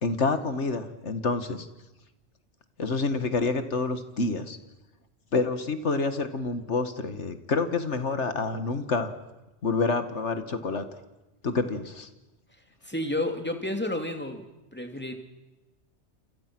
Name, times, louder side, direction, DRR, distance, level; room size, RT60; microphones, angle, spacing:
voice 1, 0.0-1.7 2.8-4.6 5.3-9.1 9.6-10.8 11.4-12.1, left 3 dB, 80° left, 9 dB, 2.0 m, -28 dB
voice 2, 12.8-14.4 14.7-15.1, left 1 dB, 10° left, 5 dB, 2.6 m, -30 dB
28.5 x 27.5 x 6.1 m, 1.0 s
omnidirectional pair, 1.2 m